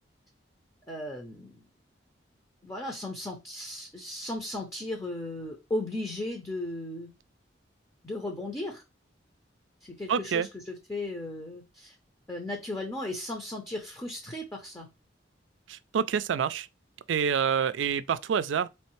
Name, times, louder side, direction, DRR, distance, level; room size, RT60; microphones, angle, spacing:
voice 1, 0.9-1.6 2.6-7.1 8.0-8.8 9.8-11.9 12.3-14.9, left 1 dB, 15° left, 0.6 m, -36 dB
voice 2, 10.1-10.5 15.7-16.7 17.1-18.7, right 7 dB, 80° right, 0.4 m, -27 dB
4.3 x 3.2 x 3.1 m
head